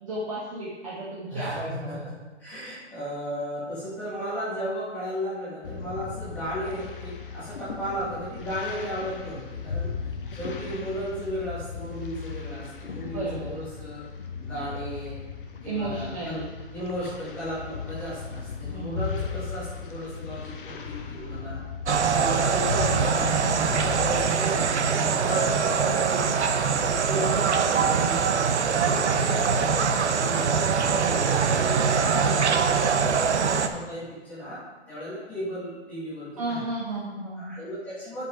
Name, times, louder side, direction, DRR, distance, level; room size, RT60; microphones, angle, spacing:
voice 1, 0.0-2.0 13.1-13.7 15.7-16.5 18.6-19.0 30.9-31.3 36.4-37.5, right 2 dB, 30° right, -8 dB, 1.5 m, -33 dB
voice 2, 1.3-2.0 2.4-14.0 14.4-15.2 15.6-16.4 16.7-21.6 22.2-26.3 26.8-34.6 34.9-36.6 37.4-38.3, equal, 5° left, -11 dB, 1.5 m, -35 dB
sound 1, 5.6-24.3, left 5 dB, 45° left, 0.8 m, -36 dB
sound 2, 21.9-33.7, right 6 dB, 70° right, 0.8 m, -23 dB
8.5 x 5.3 x 5.0 m, 1.2 s
hypercardioid pair, 175°, 36 cm